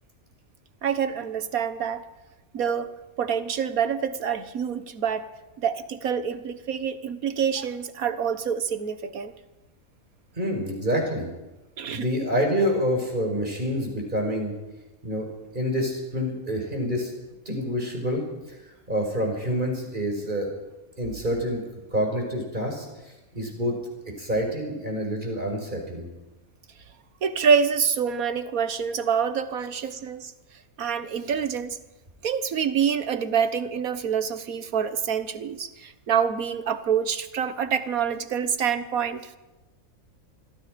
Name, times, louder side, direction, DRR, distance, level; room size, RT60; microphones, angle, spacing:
voice 1, 0.8-2.0 2.5-2.9 3.2-5.3 5.6-9.3 11.8-12.1 27.2-30.3 30.8-31.8 32.2-39.3, right 7 dB, 75° right, 11 dB, 1.7 m, -26 dB
voice 2, 10.4-11.3 11.9-14.5 15.0-15.3 15.5-17.1 17.5-18.2 18.5-18.6 18.9-20.5 21.0-21.6 21.9-23.7 24.2-26.1, equal, 35° right, 2 dB, 5.6 m, -27 dB
26.5 x 22.0 x 5.2 m, 1.1 s
omnidirectional pair, 1.5 m